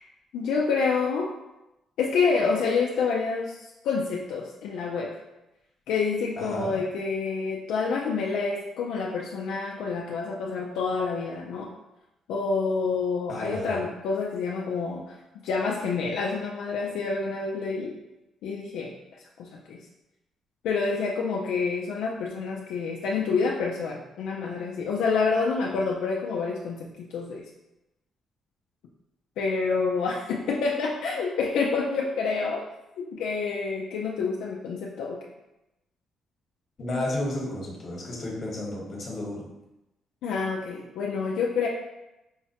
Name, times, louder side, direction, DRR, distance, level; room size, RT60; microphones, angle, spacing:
voice 1, 0.3-1.3 2.0-5.2 5.9-11.7 12.3-15.2 15.4-17.9 18.4-18.9 19.4-19.8 20.6-27.4 29.4-32.6 33.0-35.2 40.2-41.7, left 4 dB, 85° left, -1 dB, 0.3 m, -28 dB
voice 2, 6.4-6.7 13.3-13.8 36.8-39.4, left 1 dB, 45° left, -3 dB, 1.1 m, -32 dB
4.6 x 2.1 x 2.8 m, 0.93 s
cardioid pair, 90°, 0 cm